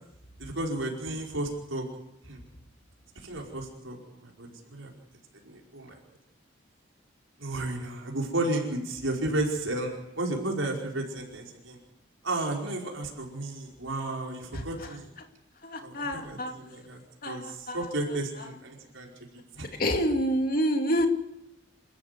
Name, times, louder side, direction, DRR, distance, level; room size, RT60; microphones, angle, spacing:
voice 1, 0.4-1.8 2.2-2.4 3.1-4.9 5.4-6.0 7.4-11.8 12.2-15.1 15.8-17.0 17.3-19.1 19.6-19.7, right 2 dB, 85° right, -1 dB, 5.1 m, -33 dB
voice 2, 15.6-16.5 17.2-17.9 19.8-21.1, equal, 45° left, 4 dB, 2.6 m, -28 dB
28.0 x 14.5 x 8.2 m, 0.79 s
head